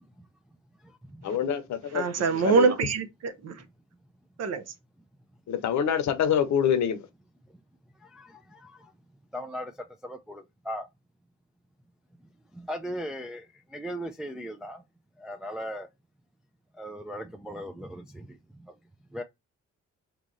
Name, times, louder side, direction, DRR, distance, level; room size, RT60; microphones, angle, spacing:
voice 1, 1.2-2.1 2.4-2.7 5.5-7.0, left 8 dB, 70° left, 0.8 m, -25 dB
voice 2, 1.9-3.6 4.4-4.6, right 4 dB, 55° right, 0.8 m, -25 dB
voice 3, 8.0-8.9 9.3-9.7 10.0-10.9 12.5-13.5 13.7-14.8 15.2-15.9 16.8-18.4 18.6-18.7 19.1-19.2, equal, ahead, 0.3 m, -38 dB
3.0 x 2.4 x 3.9 m
cardioid pair, 90°, 30 cm